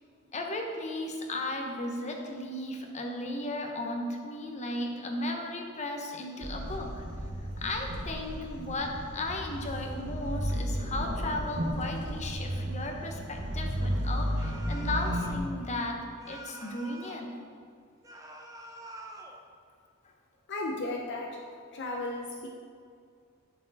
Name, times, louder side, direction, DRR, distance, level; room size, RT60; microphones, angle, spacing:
voice 1, 0.3-7.0 7.6-16.0 16.3-17.3, left 2 dB, 35° left, 2 dB, 0.9 m, -35 dB
sound 1, 6.4-15.4, equal, 60° right, 1.1 m, -33 dB
sound 2, 14.4-15.4 16.2-17.3 18.0-19.4, right 1 dB, 15° right, 0.7 m, -46 dB
voice 2, 20.5-21.4 21.7-22.5, left 2 dB, 55° left, 1 dB, 0.6 m, -35 dB
11.0 x 4.6 x 4.0 m, 2.3 s
head